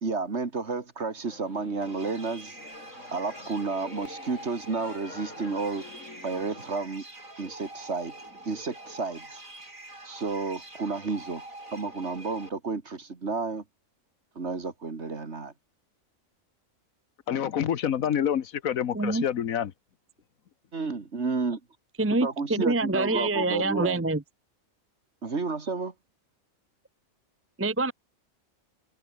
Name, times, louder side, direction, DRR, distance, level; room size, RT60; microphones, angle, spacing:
voice 1, 0.0-2.6 3.1-5.8 6.2-7.0 7.4-8.1 8.5-9.4 10.0-11.4 11.7-13.6 14.4-15.5 20.7-21.6 22.2-24.0 25.2-25.9, right 4 dB, 55° right, 2.5 m, -31 dB
Singing / Musical instrument, 1.2-6.7, left 2 dB, 65° left, 4.7 m, -46 dB
sound 1, 1.8-12.5, right 1 dB, 80° right, 8.2 m, -45 dB
voice 2, 17.3-19.7, left 9 dB, 85° left, 1.5 m, -27 dB
voice 3, 18.9-19.3 22.0-24.2 27.6-27.9, right 2 dB, 15° right, 0.7 m, -26 dB
omnidirectional pair, 1.4 m